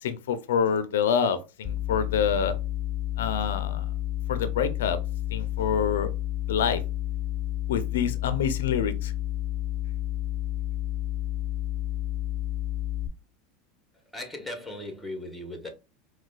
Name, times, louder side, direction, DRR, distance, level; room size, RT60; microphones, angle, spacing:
voice 1, 0.0-2.6 3.2-3.9 4.3-5.0 5.3-6.1 6.5-6.8 7.7-9.1, left 7 dB, 90° left, 0.4 m, -26 dB
sound 1, 1.6-13.1, left 13 dB, 20° left, 0.4 m, -30 dB
voice 2, 14.1-15.7, left 1 dB, ahead, 1.0 m, -37 dB
4.8 x 2.2 x 2.2 m
supercardioid pair, 115°, 0 cm